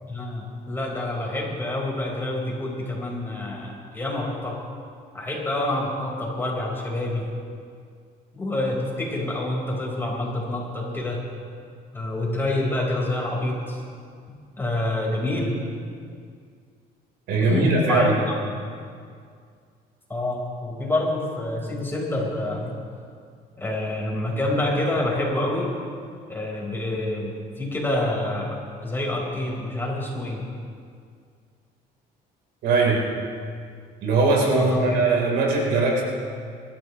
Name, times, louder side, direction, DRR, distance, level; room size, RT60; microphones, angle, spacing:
voice 1, 0.1-4.6 5.1-7.3 8.3-11.2 11.9-13.8 14.6-15.5 17.4-18.1 20.1-22.7 23.6-25.7 26.3-30.4 34.5-35.0, left 1 dB, 15° left, -3 dB, 4.3 m, -27 dB
voice 2, 17.3-18.2 32.6-33.1 34.0-36.0, right 3 dB, 90° right, -1 dB, 3.8 m, -20 dB
25.0 x 13.0 x 3.1 m, 2.2 s
cardioid pair, 110°, 17 cm